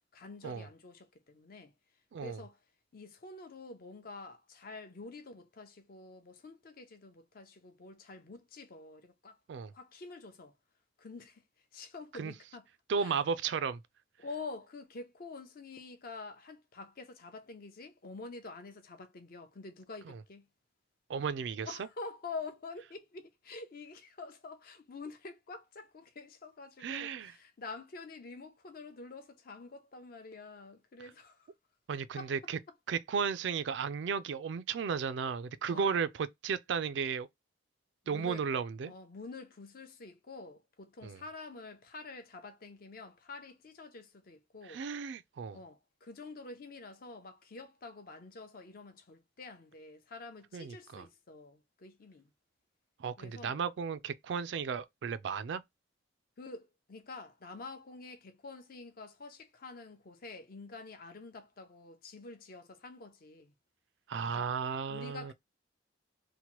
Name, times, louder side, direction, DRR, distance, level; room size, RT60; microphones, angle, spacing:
voice 1, 0.1-1.7 2.2-2.6 2.9-9.4 9.7-10.5 11.0-11.4 11.7-12.7 13.0-13.2 14.2-20.5 21.6-31.5 32.2-32.3 35.7-35.9 38.0-38.5 38.9-44.8 45.5-52.3 53.2-53.6 56.4-63.5 64.3-64.5 64.9-65.3, left 3 dB, 50° left, 0.6 m, -47 dB
voice 2, 12.9-13.8 20.1-20.2 21.1-21.8 26.8-27.3 31.9-32.6 32.9-37.3 38.1-38.9 41.0-41.2 44.7-45.6 50.5-51.1 53.0-55.6 64.1-65.3, right 6 dB, 65° right, 0.3 m, -34 dB
2.9 x 2.1 x 2.9 m
head